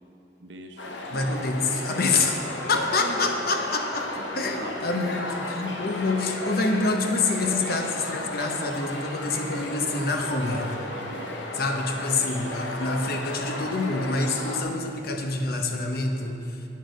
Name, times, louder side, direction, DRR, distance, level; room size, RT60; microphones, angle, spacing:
voice 1, 0.4-1.3 3.0-3.4 4.1-4.7 5.6-5.7 10.9-11.7, right 1 dB, 80° right, 4 dB, 0.8 m, -41 dB
sound 1, 0.8-14.6, left 1 dB, 80° left, 1.0 m, -34 dB
voice 2, 1.1-2.4 2.7-10.8 11.5-16.5, left 3 dB, 60° left, 4 dB, 0.8 m, -27 dB
8.4 x 6.3 x 5.1 m, 2.8 s
head